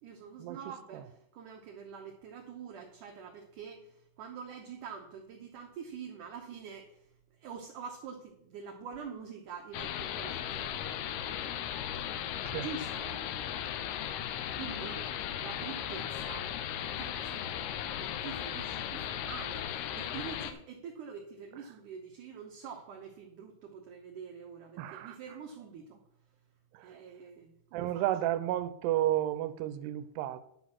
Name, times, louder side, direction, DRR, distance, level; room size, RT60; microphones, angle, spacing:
voice 1, 0.0-7.1 7.4-11.9 12.5-13.6 14.6-15.1 15.4-16.5 16.8-17.7 18.0-26.0 26.8-28.0, right 6 dB, 70° right, 2.0 m, -46 dB
sound 1, 9.7-20.5, left 10 dB, 85° left, 2.6 m, -37 dB
voice 2, 24.8-25.2 27.7-30.4, right 13 dB, 85° right, 2.7 m, -31 dB
11.0 x 6.2 x 5.9 m
omnidirectional pair, 4.8 m